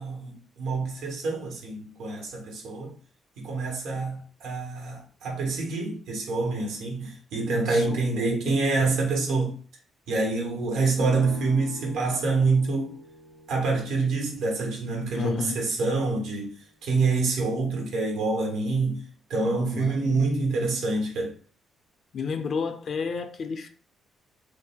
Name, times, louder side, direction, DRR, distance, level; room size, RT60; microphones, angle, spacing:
voice 1, 0.0-2.9 3.4-9.6 10.1-12.9 13.5-16.5 16.8-19.0 19.3-21.3, right 3 dB, 85° right, 1.2 m, -26 dB
voice 2, 7.7-8.6 15.1-15.7 19.4-20.3 22.1-23.7, left 5 dB, 55° left, 0.5 m, -32 dB
sound 1, 11.0-16.7, right 2 dB, 55° right, 0.8 m, -45 dB
3.4 x 2.2 x 3.4 m
cardioid pair, 90°, 0 cm